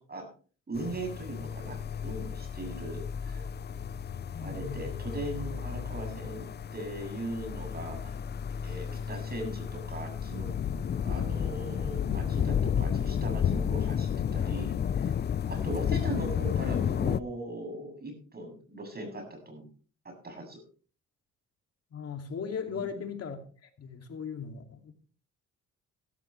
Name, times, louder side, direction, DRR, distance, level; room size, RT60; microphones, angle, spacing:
sound 1, 0.7-17.2, left 8 dB, 35° left, 0.5 m, -32 dB
voice 1, 0.7-3.5 4.4-8.2 8.6-10.5 10.9-15.1 15.5-19.7 20.0-20.6 22.7-23.0, right 1 dB, 30° right, 7.7 m, -39 dB
voice 2, 4.3-5.0 21.9-23.4 23.8-24.9, left 6 dB, 55° left, 2.6 m, -38 dB
16.0 x 13.5 x 3.3 m
cardioid pair, 90°, 30 cm